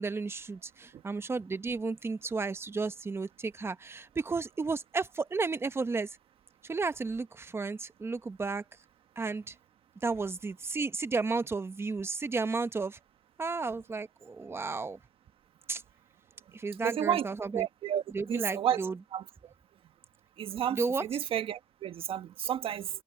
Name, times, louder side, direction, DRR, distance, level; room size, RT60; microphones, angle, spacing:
voice 1, 0.0-6.1 6.6-8.6 9.2-9.5 10.0-13.0 13.4-15.0 15.7-15.8 16.5-17.7 18.1-19.0 20.7-21.0, right 4 dB, 25° right, 0.9 m, -33 dB
voice 2, 16.8-17.3 17.5-18.0 18.3-18.8 19.1-19.2 20.4-22.9, right 10 dB, 70° right, 1.4 m, -31 dB
cardioid pair, 110°, 10 cm